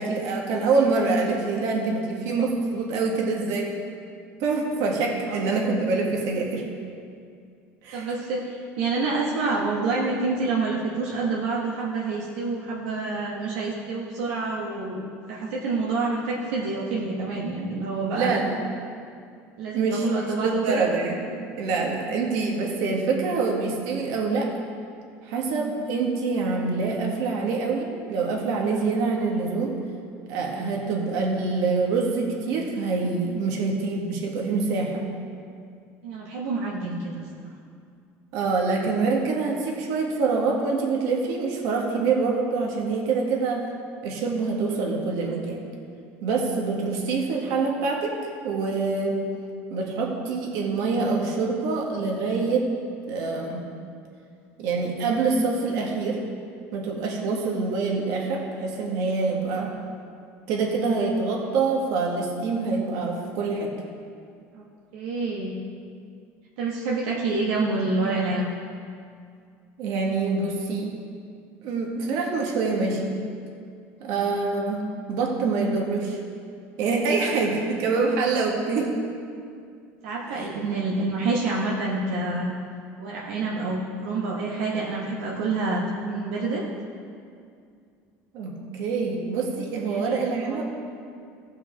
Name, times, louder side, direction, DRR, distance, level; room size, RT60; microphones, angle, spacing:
voice 1, 0.0-3.7 4.4-6.7 7.8-8.1 18.1-18.5 19.7-20.1 20.4-21.3 21.6-24.5 25.2-29.8 30.3-35.0 38.3-43.6 44.0-45.6 46.2-48.1 48.4-49.2 49.7-52.6 53.1-53.6 54.6-56.2 56.7-59.7 60.5-63.7 69.8-70.9 71.6-73.2 74.0-74.8 75.1-76.2 76.8-78.9 80.4-80.5 88.3-90.6, right 4 dB, 70° right, -1 dB, 1.9 m, -25 dB
voice 2, 7.9-18.4 19.6-20.9 30.6-30.7 36.0-37.5 57.2-57.4 64.5-64.6 64.9-65.6 66.6-68.5 74.0-74.3 78.0-78.1 80.0-82.5 83.0-86.6 89.9-90.6, right 3 dB, 90° right, -5 dB, 1.4 m, -28 dB
15.5 x 5.8 x 4.7 m, 2.3 s
supercardioid pair, 120°, 6 cm